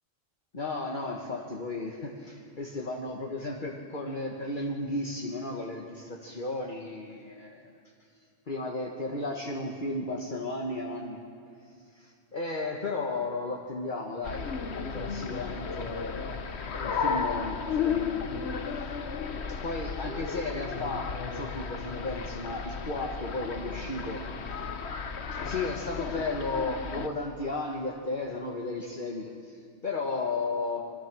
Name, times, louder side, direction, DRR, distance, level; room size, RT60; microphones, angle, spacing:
voice 1, 0.5-7.7 8.5-11.2 11.9-16.4 16.8-18.2 19.5-24.2 25.3-30.9, left 2 dB, 40° left, 0 dB, 1.7 m, -34 dB
sound 1, 14.2-27.1, left 6 dB, 60° left, 1.4 m, -34 dB
26.0 x 23.0 x 6.2 m, 2.3 s
omnidirectional pair, 1.3 m